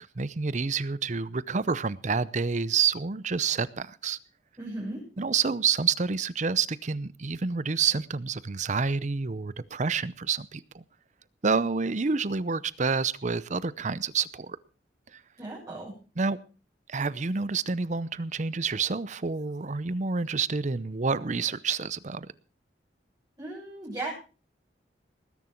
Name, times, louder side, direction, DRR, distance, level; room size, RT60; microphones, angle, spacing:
voice 1, 0.2-4.2 5.2-10.8 11.4-14.6 15.1-15.2 16.2-16.4 16.9-22.3, right 5 dB, 45° right, 18 dB, 0.7 m, -28 dB
voice 2, 4.6-5.0 15.4-15.9 23.4-24.1, right 2 dB, 20° right, -7 dB, 7.3 m, -36 dB
19.5 x 11.0 x 4.5 m, 0.36 s
head